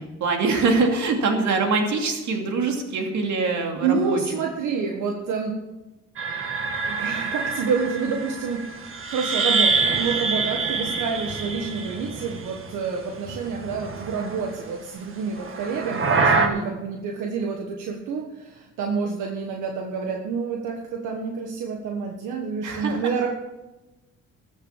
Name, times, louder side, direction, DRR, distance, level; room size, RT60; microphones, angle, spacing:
voice 1, 0.0-4.2 16.3-16.7 22.6-23.1, right 4 dB, 70° right, 3 dB, 2.7 m, -24 dB
voice 2, 3.8-5.5 6.8-23.3, right 5 dB, 90° right, 2 dB, 1.5 m, -28 dB
sound 1, 6.2-12.9 13.1-14.5 15.4-16.5, right 4 dB, 45° right, 1.8 m, -26 dB
13.5 x 7.9 x 7.3 m, 1.0 s
cardioid pair, 90°, 30 cm